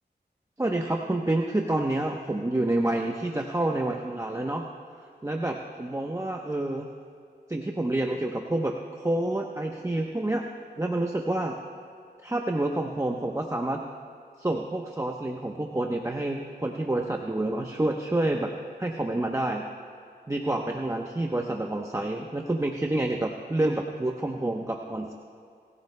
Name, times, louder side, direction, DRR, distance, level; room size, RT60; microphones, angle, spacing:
voice 1, 0.6-4.7 5.2-6.9 7.5-10.4 10.8-11.6 12.2-13.8 14.4-18.5 18.8-19.6 20.3-25.1, right 1 dB, 15° right, 1 dB, 0.9 m, -28 dB
25.5 x 15.0 x 2.2 m, 2.4 s
wide cardioid pair, 70°, 18 cm